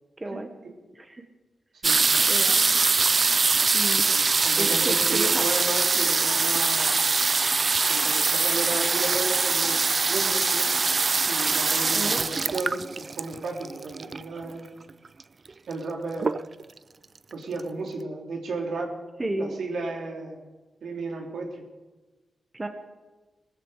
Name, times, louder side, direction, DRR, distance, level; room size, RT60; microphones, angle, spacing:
voice 1, 0.2-0.5 0.9-1.2 2.3-2.6 3.7-4.1 4.6-5.4 11.9-12.2 19.2-19.6 22.5-22.7, right 2 dB, 20° right, 6 dB, 1.3 m, -32 dB
sound 1, 1.8-14.4 15.2-15.3 15.5-15.9 16.2-16.8 17.3-17.4 17.6-17.7, right 4 dB, 40° right, 0.4 m, -23 dB
voice 2, 4.1-6.9 7.9-9.8 10.1-10.8 11.3-14.6 15.7-16.5 17.3-18.9 19.4-20.4 20.8-21.6, right 3 dB, 85° right, 1 dB, 2.9 m, -33 dB
20.0 x 13.5 x 4.9 m, 1.2 s
wide cardioid pair, 115°, 0 cm